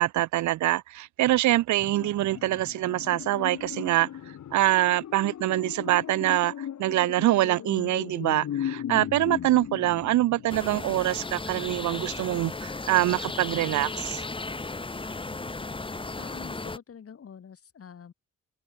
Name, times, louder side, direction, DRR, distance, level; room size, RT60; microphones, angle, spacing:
voice 1, 0.0-4.1 4.5-14.2, right 15 dB, 70° right, 0.6 m, -25 dB
sound 1, 1.8-10.9 11.2-11.3, left 10 dB, 65° left, 6.7 m, -37 dB
sound 2, 10.5-16.8, left 3 dB, 15° left, 2.1 m, -35 dB
voice 2, 16.2-18.1, left 7 dB, 50° left, 6.2 m, -46 dB
open air
cardioid pair, 90°, 30 cm